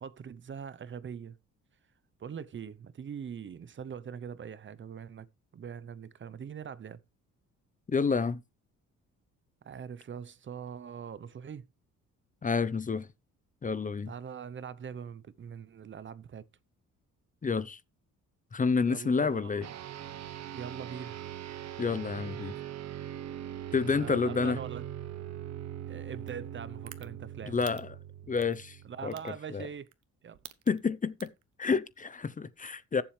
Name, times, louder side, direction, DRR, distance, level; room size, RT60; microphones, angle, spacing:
voice 1, 0.0-1.4 2.2-5.3 5.5-7.0 9.6-11.6 14.1-16.4 18.8-19.6 20.5-21.2 23.8-24.9 25.9-27.6 28.8-29.9 30.2-30.4, right 7 dB, 40° right, 0.8 m, -42 dB
voice 2, 7.9-8.4 12.4-13.1 13.6-14.1 17.4-17.8 18.5-19.7 21.8-22.5 23.7-24.6 27.5-27.9 28.3-29.6 30.7-31.3 31.6-33.0, left 5 dB, 25° left, 0.7 m, -29 dB
sound 1, 19.6-29.3, right 11 dB, 60° right, 1.2 m, -41 dB
sound 2, 26.3-26.4 26.9-27.1 27.6-27.8 28.4-28.6 29.1-29.3 29.9-30.0 30.3-30.8 31.2-31.4, right 13 dB, 75° right, 1.1 m, -46 dB
15.0 x 7.3 x 3.3 m
cardioid pair, 90°, 30 cm